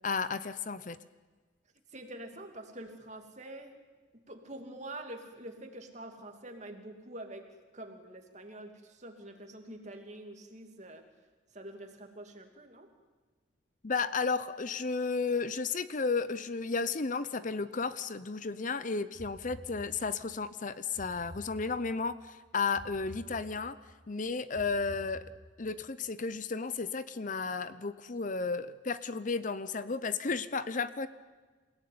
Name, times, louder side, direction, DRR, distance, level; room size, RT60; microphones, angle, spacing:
voice 1, 0.0-1.0 13.8-23.8 24.1-25.2 25.6-31.1, left 4 dB, 40° left, 14 dB, 0.7 m, -33 dB
voice 2, 1.9-3.8 4.3-7.4 7.7-11.0 11.5-12.9, right 1 dB, 35° right, 4 dB, 2.7 m, -46 dB
sound 1, 19.1-20.3 21.0-22.1 22.7-23.9 24.5-25.7, equal, 60° left, 3.8 m, -50 dB
28.0 x 17.5 x 9.6 m, 1.3 s
head